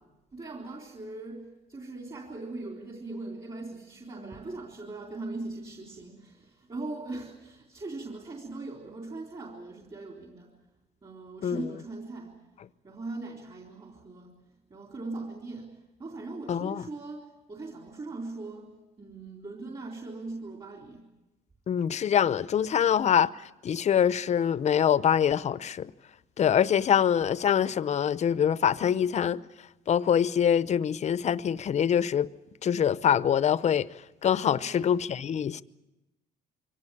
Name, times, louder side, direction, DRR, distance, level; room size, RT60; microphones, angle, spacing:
voice 1, 0.3-10.5 11.0-12.4 12.8-14.3 14.7-18.7 19.0-21.1 34.6-34.9, right 2 dB, 30° right, 3.7 m, -40 dB
voice 2, 16.5-16.9 21.7-23.3 23.6-25.9 26.4-29.4 29.9-32.3 32.6-33.9 34.2-35.6, left 8 dB, 40° left, 0.7 m, -24 dB
23.5 x 18.0 x 9.9 m
cardioid pair, 110°, 17 cm